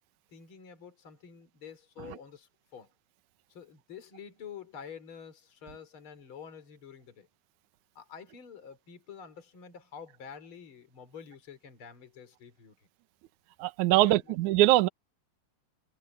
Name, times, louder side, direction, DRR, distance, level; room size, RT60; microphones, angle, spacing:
voice 1, 0.3-2.9 3.5-7.3 7.9-12.9 13.9-14.4, left 7 dB, 30° left, 4.3 m, -48 dB
voice 2, 13.6-14.9, right 15 dB, 85° right, 1.7 m, -22 dB
omnidirectional pair, 4.9 m